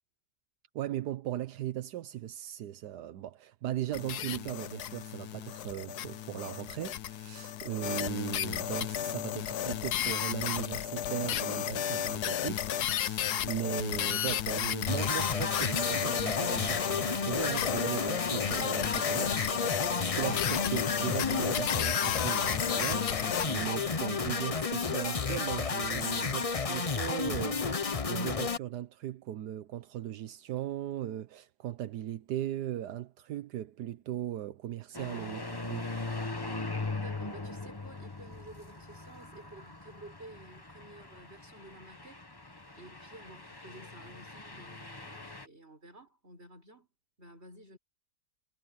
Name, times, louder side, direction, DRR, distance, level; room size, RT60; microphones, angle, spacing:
voice 1, 0.7-35.8, right 12 dB, 85° right, 1.4 m, -38 dB
sound 1, 3.9-23.5, left 11 dB, 75° left, 1.3 m, -33 dB
sound 2, 14.9-28.6, left 5 dB, 35° left, 0.6 m, -31 dB
sound 3, 34.9-45.5, left 3 dB, 15° left, 1.2 m, -41 dB
voice 2, 36.9-42.2 42.8-46.9 47.2-47.8, right 2 dB, 40° right, 6.6 m, -52 dB
omnidirectional pair, 1.7 m